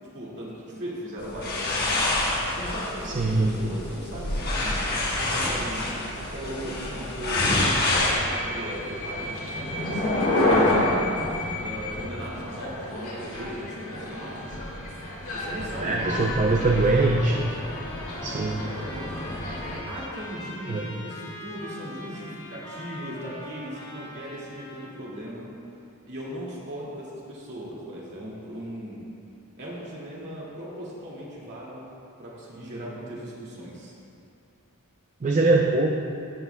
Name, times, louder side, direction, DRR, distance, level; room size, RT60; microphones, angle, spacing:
voice 1, 0.1-2.1 2.5-4.8 5.1-7.6 8.0-11.2 11.6-14.6 15.3-16.8 18.3-19.3 19.8-25.5 26.1-29.0 29.6-31.9 32.2-33.9, equal, 50° right, -6 dB, 2.1 m, -38 dB
sound 1, 1.2-8.1, left 2 dB, 45° left, 1.3 m, -27 dB
voice 2, 3.0-3.6 15.8-17.4 18.2-18.6 20.7-21.0 35.2-35.9, right 2 dB, 35° right, 0 dB, 0.5 m, -22 dB
sound 2, 7.9-19.8, left 1 dB, 65° left, 2.0 m, -29 dB
Trumpet, 16.5-25.1, left 1 dB, 20° left, 1.1 m, -42 dB
15.0 x 8.1 x 2.2 m, 2.5 s
head